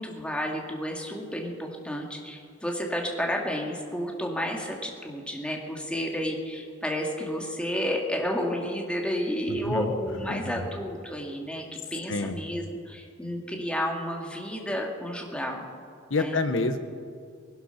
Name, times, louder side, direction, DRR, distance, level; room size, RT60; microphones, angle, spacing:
voice 1, 0.0-11.6 11.9-15.6 16.1-16.4, equal, 5° left, 0 dB, 2.1 m, -31 dB
voice 2, 9.5-9.9 10.3-10.7 12.1-12.4 16.1-16.8, left 3 dB, 70° left, 9 dB, 1.2 m, -28 dB
19.5 x 12.5 x 5.8 m, 2.2 s
head